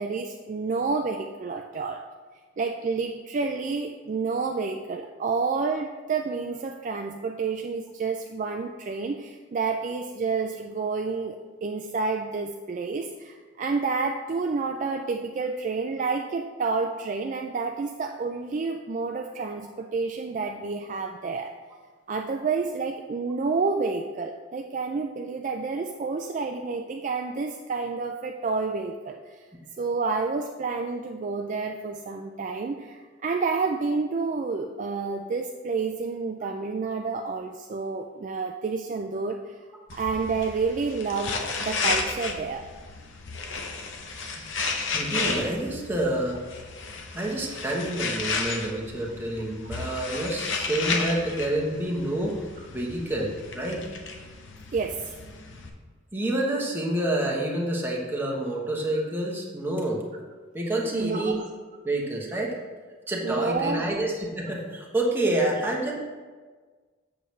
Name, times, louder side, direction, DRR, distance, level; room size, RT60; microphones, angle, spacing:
voice 1, 0.0-2.0 2.6-21.5 22.1-29.4 29.8-39.5 39.9-42.7 54.7-55.2 58.9-59.0 60.9-61.4 63.2-63.9 65.6-65.7, right 4 dB, 40° right, 3 dB, 0.3 m, -29 dB
sound 1, 39.9-55.7, left 4 dB, 65° left, 0.7 m, -33 dB
voice 2, 44.9-46.4 47.1-52.4 52.7-53.8 56.1-60.0 60.5-61.4 61.8-62.6 63.1-65.9, right 1 dB, 10° right, -2 dB, 1.0 m, -28 dB
7.7 x 6.7 x 3.2 m, 1.5 s
head